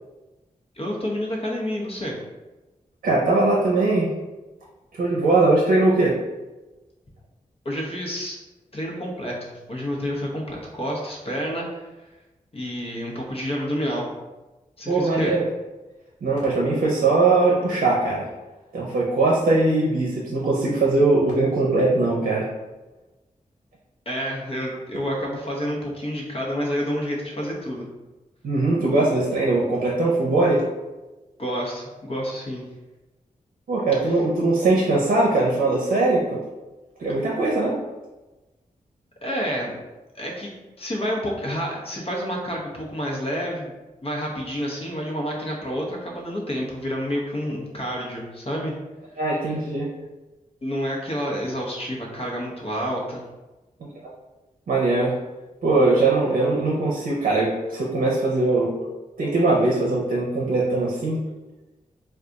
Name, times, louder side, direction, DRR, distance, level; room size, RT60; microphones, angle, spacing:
voice 1, 0.7-2.1 7.6-8.4 8.7-11.9 12.5-14.1 14.8-15.3 24.1-27.9 31.4-32.6 34.0-34.1 39.2-39.8 40.1-40.5 40.8-43.7 44.0-48.7 50.6-53.2, equal, 45° left, -2 dB, 0.9 m, -29 dB
voice 2, 3.0-4.1 4.9-6.1 14.9-15.4 16.2-18.3 18.7-22.5 28.4-30.6 33.7-36.4 37.0-37.8 49.2-49.9 54.7-55.1 55.6-58.7 59.2-61.2, right 2 dB, 85° right, -3 dB, 0.6 m, -21 dB
2.4 x 2.3 x 3.9 m, 1.1 s
cardioid pair, 60°, 14 cm